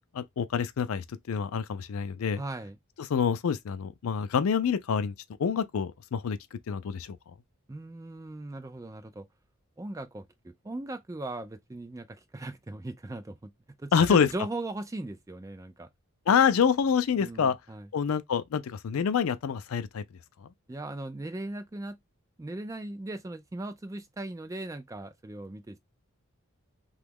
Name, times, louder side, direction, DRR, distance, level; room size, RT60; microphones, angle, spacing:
voice 1, 0.1-2.4 3.0-5.1 5.4-7.2 13.9-14.3 16.3-17.6 17.9-20.0 20.4-20.5, left 7 dB, 75° left, 0.4 m, -26 dB
voice 2, 2.4-2.8 7.7-9.3 9.8-13.5 13.8-15.9 17.2-17.9 20.7-22.0 22.4-25.8, right 2 dB, 15° right, 0.3 m, -38 dB
2.9 x 2.3 x 3.4 m
head